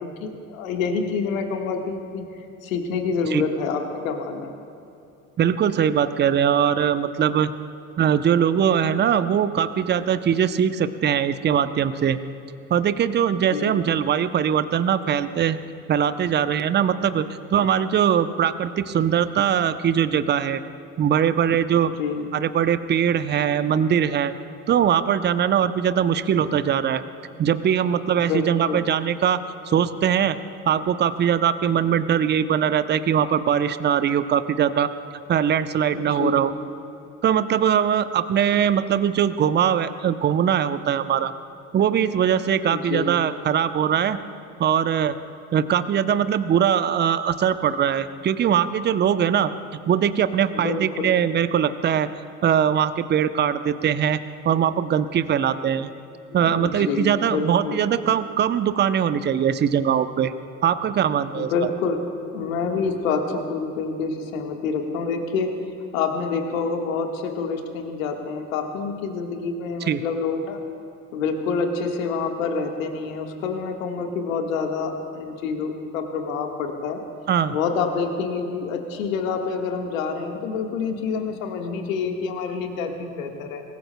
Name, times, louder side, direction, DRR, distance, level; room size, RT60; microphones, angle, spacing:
voice 1, 0.0-2.2 2.6-4.5 13.5-13.8 22.0-22.2 28.2-28.9 35.9-36.4 42.7-43.1 50.5-51.1 56.4-57.8 61.3-62.0 62.3-65.6 65.9-70.6 71.1-77.0 77.5-83.6, left 5 dB, 75° left, 4 dB, 1.6 m, -27 dB
voice 2, 5.4-7.5 8.0-12.2 12.7-15.6 15.9-17.2 17.5-20.6 21.0-21.9 22.3-24.3 24.7-27.0 27.4-30.4 30.7-34.9 35.3-36.5 37.2-41.3 41.7-44.2 44.6-45.2 45.5-49.5 49.9-52.1 52.4-54.2 54.4-55.9 56.3-60.3 60.6-61.7 69.9-70.0 77.3-77.5, right 8 dB, 25° right, 12 dB, 0.7 m, -21 dB
24.5 x 19.0 x 2.2 m, 2.7 s
hypercardioid pair, 70°, 41 cm